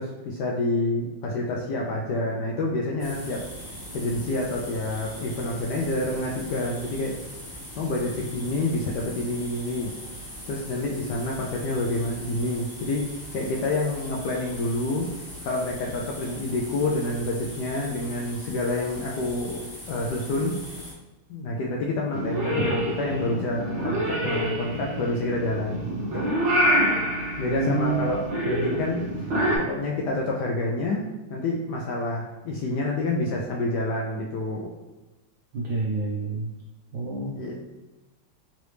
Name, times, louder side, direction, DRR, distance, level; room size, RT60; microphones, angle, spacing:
voice 1, 0.0-3.4 3.9-7.2 7.8-9.9 10.5-20.6 21.3-26.5 27.4-29.0 29.6-34.7 37.3-37.6, left 2 dB, 80° left, -2 dB, 0.9 m, -28 dB
sound 1, 3.0-20.9, equal, 20° left, 0.5 m, -40 dB
Purr / Meow, 22.1-29.6, right 1 dB, 60° right, 0.7 m, -26 dB
voice 2, 27.5-28.1 35.5-36.5 36.9-37.4, right 3 dB, 90° right, -3 dB, 0.8 m, -27 dB
3.9 x 3.1 x 3.2 m, 1.1 s
omnidirectional pair, 2.4 m